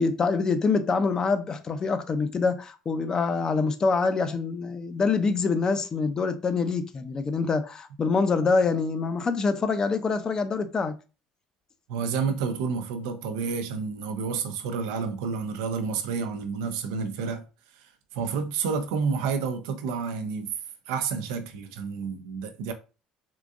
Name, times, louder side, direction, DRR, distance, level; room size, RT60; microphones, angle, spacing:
voice 1, 0.0-11.0, left 4 dB, 35° left, 0.5 m, -25 dB
voice 2, 11.9-17.4 17.7-20.5 20.9-22.7, right 5 dB, 85° right, 0.6 m, -30 dB
3.7 x 2.5 x 2.4 m
supercardioid pair, 85°, 2 cm